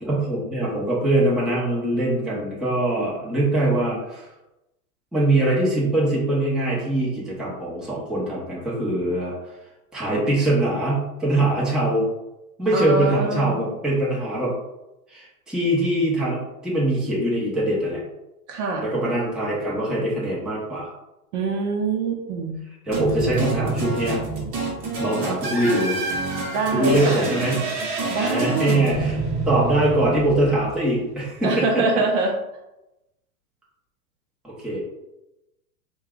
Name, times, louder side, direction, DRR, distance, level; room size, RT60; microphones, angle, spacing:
voice 1, 0.0-4.3 5.1-9.4 9.9-12.1 12.6-14.5 15.1-18.0 18.8-20.9 22.8-24.2 25.0-26.0 26.7-27.6 28.2-29.2 29.5-31.8 34.4-34.8, right 1 dB, ahead, -7 dB, 0.7 m, -23 dB
voice 2, 12.7-13.6 18.5-18.9 21.3-22.6 26.5-27.2 28.1-28.9 31.4-32.3, right 3 dB, 50° right, 2 dB, 0.7 m, -24 dB
sound 1, 22.9-31.2, right 3 dB, 30° right, 1.0 m, -27 dB
5.5 x 2.3 x 2.4 m, 0.95 s
hypercardioid pair, 125°, 47 cm